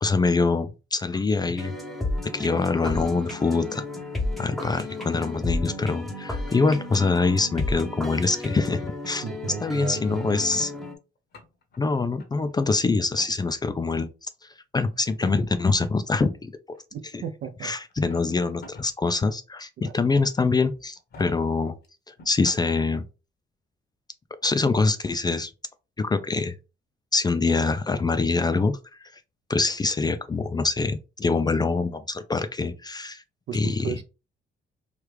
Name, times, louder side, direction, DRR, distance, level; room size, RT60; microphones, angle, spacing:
voice 1, 0.0-1.7 2.2-3.8 4.4-9.2 9.6-10.7 11.8-14.3 14.7-16.8 17.1-17.2 17.6-21.7 22.1-23.0 24.4-25.5 26.0-26.6 27.1-28.8 29.5-33.2 33.5-34.0, left 3 dB, 20° left, 0.3 m, -24 dB
sound 1, 1.6-10.9, left 2 dB, ahead, 0.7 m, -33 dB
voice 2, 9.2-10.7 16.9-17.7 19.8-19.9 33.5-34.0, right 8 dB, 60° right, 0.6 m, -35 dB
sound 2, 9.8-10.7 11.2-11.8 12.2-12.8 13.1-13.3 13.8-14.1 15.1-15.7 16.7-16.8 17.9-18.9 19.3-19.4 20.1-20.4 21.0-21.3 21.8-21.9 22.2-22.7, left 3 dB, 55° left, 0.9 m, -46 dB
3.1 x 2.3 x 3.2 m
cardioid pair, 90°, 20 cm